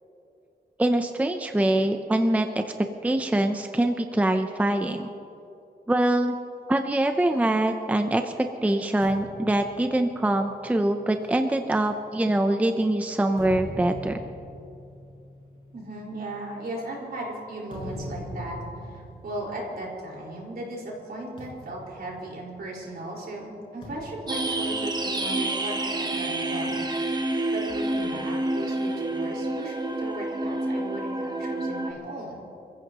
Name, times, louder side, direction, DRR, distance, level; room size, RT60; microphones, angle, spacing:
voice 1, 0.8-5.1 5.9-6.4 6.7-14.2, right 1 dB, 10° right, 6 dB, 0.6 m, -24 dB
sound 1, 9.0-12.6 13.1-20.5 20.8-21.0 21.4-23.0 23.8-25.6, left 1 dB, 30° left, 4.8 m, -43 dB
voice 2, 15.7-32.5, right 1 dB, 65° right, -3 dB, 4.7 m, -37 dB
sound 2, 24.3-31.9, right 2 dB, 25° right, 1.0 m, -28 dB
28.5 x 15.5 x 3.0 m, 2.7 s
wide cardioid pair, 165°, 17 cm